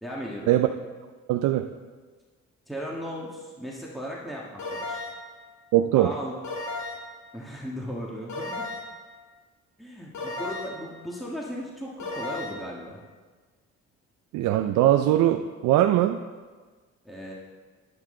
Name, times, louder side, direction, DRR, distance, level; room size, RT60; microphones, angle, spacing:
voice 1, 0.0-0.5 2.7-5.0 5.9-6.3 7.3-8.6 9.8-13.0 17.0-17.3, equal, ahead, -4 dB, 1.7 m, -36 dB
voice 2, 1.3-1.7 5.7-6.1 14.3-16.2, right 13 dB, 90° right, 6 dB, 0.5 m, -21 dB
sound 1, 4.6-5.3 6.4-7.2 8.3-9.0 10.1-10.9 12.0-12.6, left 2 dB, 70° left, 2.3 m, -34 dB
11.0 x 10.5 x 3.8 m, 1.4 s
cardioid pair, 90°, 30 cm